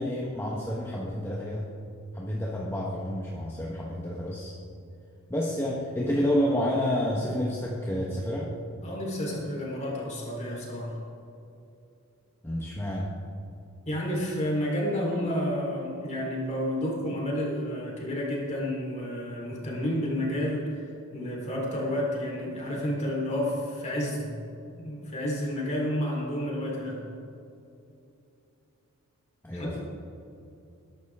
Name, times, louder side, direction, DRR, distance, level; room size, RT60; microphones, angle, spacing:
voice 1, 0.0-1.7 2.1-4.6 5.3-8.5 12.4-13.2 29.4-29.8, equal, 10° left, -3 dB, 1.2 m, -29 dB
voice 2, 8.8-11.0 13.9-20.8 21.1-24.3 24.7-27.0 29.5-29.8, equal, 30° left, -3 dB, 3.9 m, -30 dB
20.0 x 11.5 x 3.7 m, 2.8 s
head